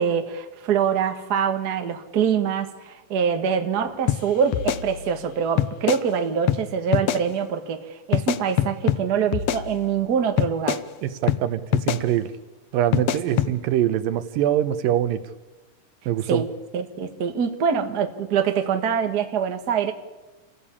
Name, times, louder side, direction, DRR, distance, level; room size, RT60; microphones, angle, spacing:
voice 1, 0.0-10.8 13.3-13.4 16.2-16.5 16.7-19.9, right 7 dB, 40° right, 6 dB, 1.4 m, -24 dB
sound 1, 4.1-4.2 4.5-5.3 5.6-6.0 6.5-6.6 6.9-7.2 8.1-9.0 9.3-10.1 10.4-10.8 11.3-11.4 11.7-12.0 12.9-13.5, left 12 dB, 75° left, 1.5 m, -23 dB
voice 2, 11.0-11.6 11.9-12.3 12.7-15.2 16.1-16.4, right 11 dB, 85° right, 11 dB, 2.8 m, -23 dB
27.0 x 16.0 x 8.6 m, 1.1 s
omnidirectional pair, 3.9 m